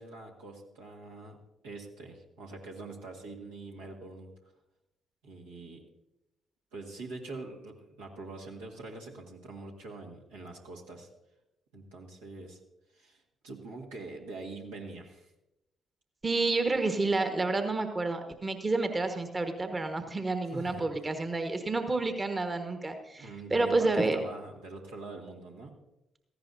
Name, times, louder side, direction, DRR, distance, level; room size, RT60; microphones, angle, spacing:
voice 1, 0.0-1.4 1.6-4.3 5.2-5.8 6.7-11.1 11.7-12.6 12.9-15.3 20.5-20.9 23.1-25.7, right 3 dB, 75° right, -2 dB, 1.8 m, -44 dB
voice 2, 16.2-24.2, right 3 dB, 30° right, 7 dB, 1.4 m, -29 dB
17.0 x 14.5 x 2.7 m, 0.91 s
figure-of-eight pair, 40°, 0 cm